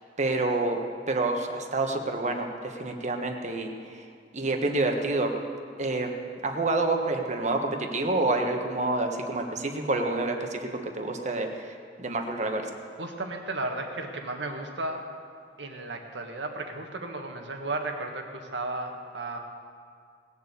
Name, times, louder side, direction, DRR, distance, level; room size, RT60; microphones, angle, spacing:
voice 1, 0.2-0.8 1.1-4.0 4.3-5.3 5.8-6.2 6.4-10.7 10.9-12.7, right 2 dB, 40° right, 4 dB, 1.4 m, -28 dB
voice 2, 13.0-15.0 15.6-19.4, right 2 dB, 75° right, 3 dB, 1.7 m, -34 dB
19.0 x 7.1 x 8.2 m, 2.2 s
head